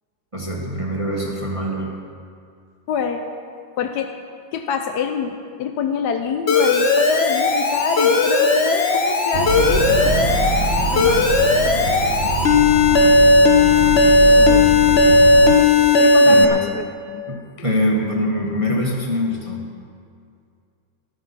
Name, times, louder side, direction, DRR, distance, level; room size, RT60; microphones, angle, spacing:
voice 1, 0.3-1.9 16.2-16.6 17.3-19.6, equal, 15° right, -2 dB, 1.5 m, -23 dB
voice 2, 2.9-3.2 3.8-4.1 4.5-10.2 10.9-11.3 14.4-14.7 15.4-17.3, left 7 dB, 65° left, 5 dB, 1.2 m, -26 dB
Alarm, 6.5-16.4, left 2 dB, 40° left, 1.2 m, -15 dB
sound 1, 9.3-15.6, right 4 dB, 50° right, 0.8 m, -25 dB
14.0 x 12.5 x 5.7 m, 2.3 s
omnidirectional pair, 2.1 m